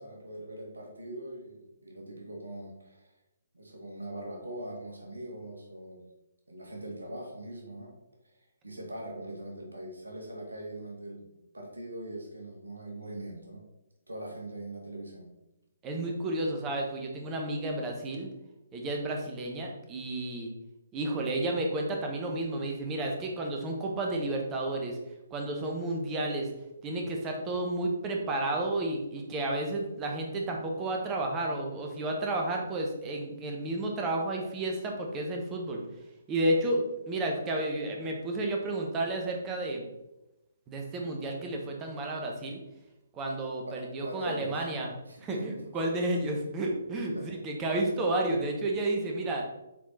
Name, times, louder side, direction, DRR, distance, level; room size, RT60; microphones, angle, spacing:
voice 1, 0.0-3.1 3.5-6.0 6.5-7.9 8.2-8.3 8.6-13.6 14.1-15.3 43.6-44.6 45.1-45.6 47.1-47.3, right 1 dB, 70° right, 0 dB, 1.8 m, -41 dB
voice 2, 15.8-18.3 18.7-20.5 20.9-25.0 25.3-26.5 26.8-35.8 36.3-39.9 40.7-42.6 43.1-44.9 45.2-49.4, right 2 dB, 20° right, 1 dB, 1.2 m, -31 dB
7.5 x 4.4 x 4.1 m, 0.93 s
figure-of-eight pair, 130°, 0 cm